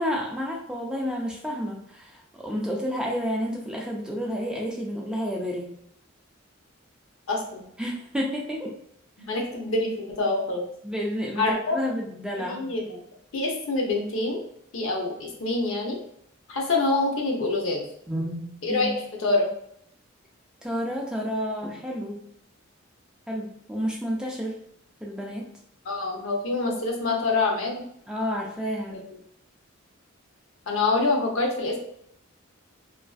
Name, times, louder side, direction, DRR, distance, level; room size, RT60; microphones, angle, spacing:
voice 1, 0.0-5.8 7.8-8.8 10.8-12.7 18.1-19.0 20.6-22.3 23.3-24.6 25.0-25.6 28.1-29.0, equal, 5° right, -2 dB, 0.3 m, -30 dB
voice 2, 7.3-7.6 9.3-10.6 11.4-11.8 12.5-13.0 13.3-14.4 14.7-16.0 16.5-17.9 18.6-18.9 19.2-19.5 25.9-27.8 30.7-31.8, left 3 dB, 75° left, 0 dB, 0.6 m, -26 dB
2.4 x 2.3 x 2.3 m, 0.69 s
head